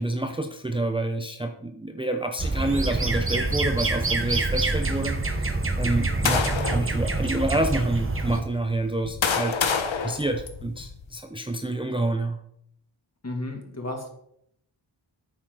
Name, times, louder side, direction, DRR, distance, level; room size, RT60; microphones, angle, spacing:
voice 1, 0.0-12.4, right 2 dB, 10° right, 5 dB, 0.7 m, -28 dB
sound 1, 2.4-8.4, right 2 dB, 30° right, 1.3 m, -26 dB
sound 2, 5.7-6.9 7.7-7.8 8.7-11.0, left 6 dB, 80° left, 1.1 m, -28 dB
voice 2, 13.2-14.1, left 1 dB, 35° left, 2 dB, 2.3 m, -33 dB
9.7 x 8.8 x 3.9 m, 0.73 s
wide cardioid pair, 85°, 46 cm